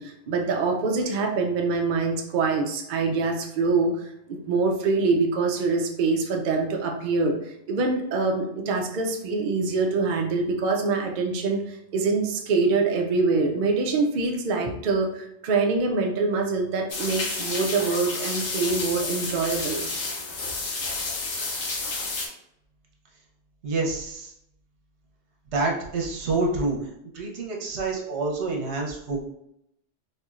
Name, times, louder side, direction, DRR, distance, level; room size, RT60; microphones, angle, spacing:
voice 1, 0.0-19.8, right 4 dB, 55° right, 2 dB, 0.6 m, -25 dB
sound 1, 16.9-22.3, left 3 dB, 80° left, 1.0 m, -30 dB
voice 2, 23.6-24.3 25.5-26.8 27.1-29.3, right 3 dB, 75° right, -1 dB, 1.1 m, -27 dB
4.3 x 2.6 x 2.4 m, 0.78 s
omnidirectional pair, 1.2 m